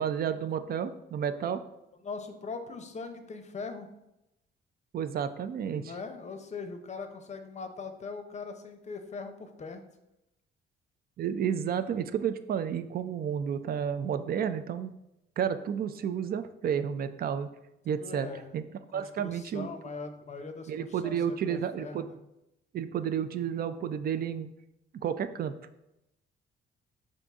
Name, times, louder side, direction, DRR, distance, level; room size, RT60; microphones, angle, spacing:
voice 1, 0.0-1.6 4.9-5.9 11.2-14.9 15.4-17.5 17.9-18.3 18.5-18.6 18.9-19.7 20.7-22.1 22.7-24.5 25.0-25.5, right 8 dB, 50° right, 11 dB, 0.4 m, -31 dB
voice 2, 2.0-3.9 5.7-9.8 17.9-18.5 18.9-22.2, left 4 dB, 35° left, 7 dB, 0.6 m, -41 dB
5.4 x 2.6 x 3.5 m, 0.88 s
cardioid pair, 90°, 20 cm